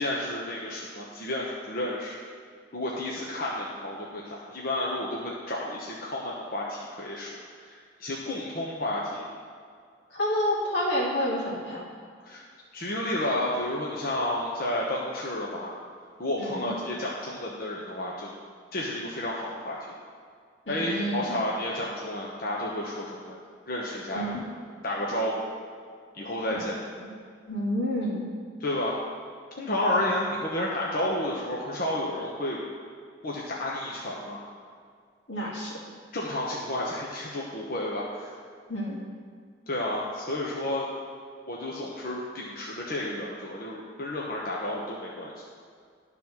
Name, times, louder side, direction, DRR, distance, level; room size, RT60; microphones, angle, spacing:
voice 1, 0.0-2.2 2.7-7.4 7.7-9.3 12.3-12.4 12.7-15.7 16.2-18.3 18.7-19.8 20.7-23.4 23.7-24.2 24.8-25.4 26.1-26.8 28.6-29.0 29.6-32.6 33.2-34.4 36.1-38.3 39.7-40.9 41.5-45.3, left 1 dB, 55° left, -4 dB, 1.0 m, -31 dB
voice 2, 10.1-11.8 16.4-16.8 20.7-21.4 24.1-24.4 27.0-27.1 27.5-28.3 29.9-30.1 35.3-35.7 38.7-39.0, equal, 90° left, -5 dB, 2.2 m, -29 dB
11.0 x 4.1 x 6.0 m, 2.1 s
head